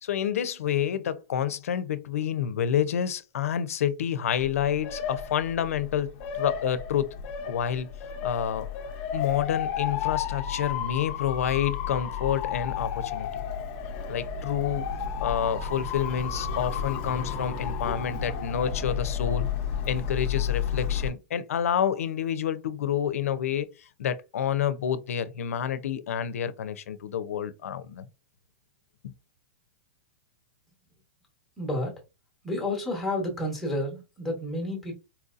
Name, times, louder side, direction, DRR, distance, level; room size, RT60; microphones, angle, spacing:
voice 1, 0.0-7.1 7.5-7.9 8.2-8.7 9.1-13.3 14.1-14.9 15.2-19.5 19.9-28.1 29.0-29.1, left 9 dB, 90° left, 0.5 m, -28 dB
Motor vehicle (road) / Siren, 4.3-21.1, left 8 dB, 25° left, 0.5 m, -32 dB
voice 2, 31.6-31.9 32.4-34.9, left 1 dB, ahead, 0.9 m, -30 dB
4.3 x 2.7 x 2.4 m
supercardioid pair, 180°, 8 cm